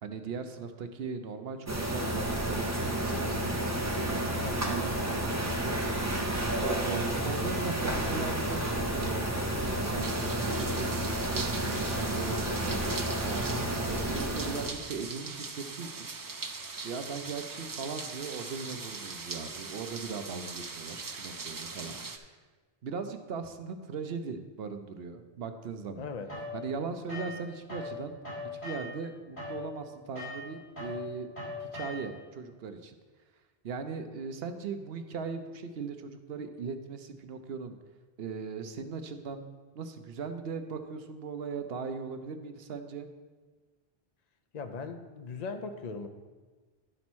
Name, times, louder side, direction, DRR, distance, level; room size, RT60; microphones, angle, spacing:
voice 1, 0.0-5.8 6.9-10.1 10.4-16.1 16.8-22.0 22.8-26.1 26.5-28.1 28.5-31.3 31.6-33.0 33.6-37.8 38.2-39.5 39.7-43.1, right 5 dB, 70° right, 8 dB, 0.9 m, -39 dB
sound 1, 1.7-14.7, right 1 dB, 15° right, 0.9 m, -31 dB
voice 2, 4.4-4.7 26.0-26.3 44.5-46.1, left 4 dB, 45° left, 8 dB, 0.7 m, -39 dB
sound 2, 10.0-22.2, right 4 dB, 35° right, 0.3 m, -40 dB
sound 3, 26.3-27.9 28.2-32.3, left 2 dB, 90° left, 3.8 m, -40 dB
11.0 x 4.2 x 6.1 m, 1.3 s
omnidirectional pair, 1.1 m